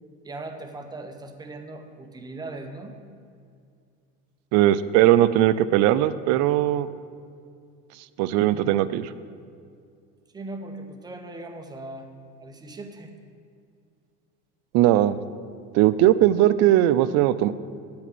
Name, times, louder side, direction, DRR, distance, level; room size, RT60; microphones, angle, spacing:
voice 1, 0.2-3.0 10.3-12.1 12.4-13.1, right 2 dB, 15° right, 5 dB, 0.9 m, -39 dB
voice 2, 4.5-6.9 8.2-9.1 14.7-15.2 15.7-17.5, right 13 dB, 65° right, 15 dB, 0.5 m, -19 dB
8.7 x 7.9 x 6.1 m, 2.3 s
cardioid pair, 135°, 29 cm